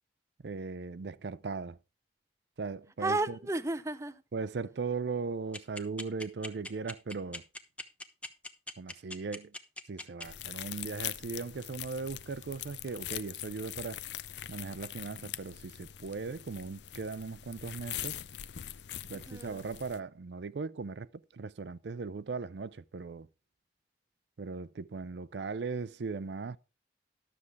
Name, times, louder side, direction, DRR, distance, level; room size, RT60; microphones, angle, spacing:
voice 1, 0.4-1.8 2.6-3.4 4.3-7.4 8.8-9.5 9.9-14.0 14.5-18.2 19.1-23.3 24.4-26.6, right 4 dB, 75° right, 0.5 m, -38 dB
voice 2, 3.0-4.2 19.1-19.6, right 2 dB, 15° right, 0.5 m, -33 dB
sound 1, 5.5-10.2, left 1 dB, 5° left, 0.8 m, -40 dB
sound 2, 10.2-20.0, left 12 dB, 75° left, 0.5 m, -42 dB
12.0 x 7.0 x 4.6 m
head